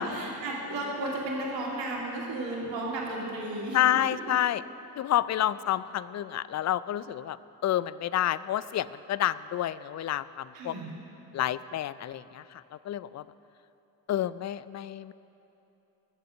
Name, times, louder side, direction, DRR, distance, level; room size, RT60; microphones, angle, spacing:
voice 1, 0.0-4.2 10.5-10.9, right 1 dB, 60° right, -3 dB, 2.9 m, -34 dB
voice 2, 3.7-4.6 5.0-7.4 7.6-10.7 11.3-12.4 12.9-13.2 14.1-15.1, left 12 dB, 35° left, 17 dB, 0.5 m, -29 dB
21.0 x 7.7 x 6.5 m, 2.9 s
hypercardioid pair, 45°, 50 cm